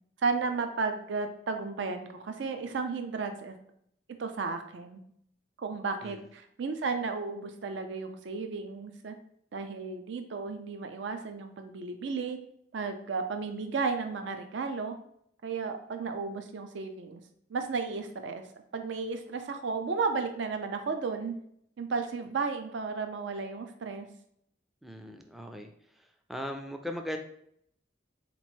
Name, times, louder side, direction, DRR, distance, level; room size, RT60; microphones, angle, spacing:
voice 1, 0.2-3.6 4.2-5.0 5.6-9.1 9.5-12.4 12.7-15.0 15.4-17.2 17.5-18.4 18.7-21.4 21.8-24.1, right 4 dB, 75° right, 7 dB, 0.4 m, -33 dB
voice 2, 24.8-25.7 26.0-27.2, equal, ahead, 4 dB, 0.3 m, -39 dB
3.9 x 3.0 x 4.4 m, 0.70 s
head